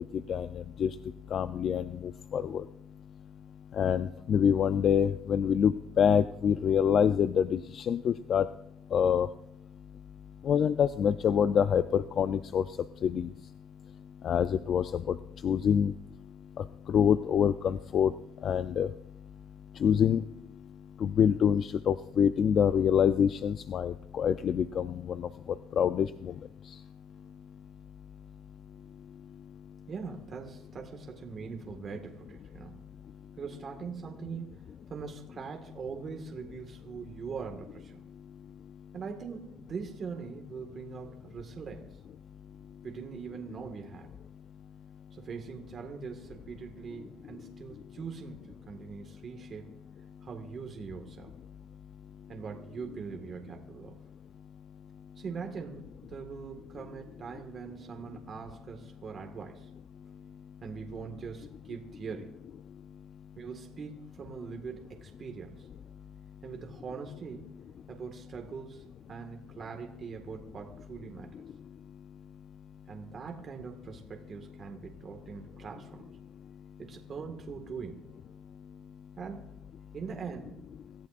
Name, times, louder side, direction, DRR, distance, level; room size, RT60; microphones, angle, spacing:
voice 1, 0.3-0.9 1.3-1.8 2.3-2.6 3.8-8.5 8.9-9.3 10.4-12.6 13.0-13.3 14.2-15.2 15.4-15.9 16.6-18.1 18.4-18.9 19.8-20.2 21.0-25.3 25.8-26.3, left 8 dB, 45° left, 11 dB, 0.4 m, -26 dB
voice 2, 29.9-32.7 33.4-34.6 34.9-38.0 38.9-42.0 42.8-44.1 45.1-49.8 50.2-51.3 52.3-54.0 55.2-59.7 60.6-62.4 63.4-65.7 66.4-67.5 67.9-71.4 72.9-76.1 76.8-78.0 79.2-79.4 79.9-80.6, right 5 dB, 40° right, 3 dB, 1.7 m, -42 dB
25.5 x 14.5 x 2.5 m, 0.81 s
cardioid pair, 125°, 0 cm